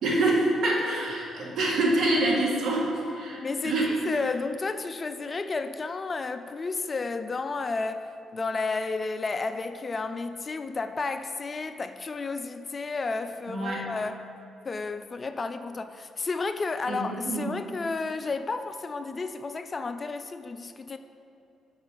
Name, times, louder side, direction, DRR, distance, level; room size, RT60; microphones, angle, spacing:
voice 1, 0.0-2.9 3.1-3.4 3.6-4.2 13.5-13.9 16.9-17.5, right 2 dB, 70° right, -3 dB, 1.5 m, -26 dB
voice 2, 3.4-3.8 4.0-14.2 14.7-21.0, left 3 dB, 35° left, 10 dB, 0.3 m, -32 dB
5.9 x 4.2 x 6.1 m, 2.7 s
cardioid pair, 90°, 0 cm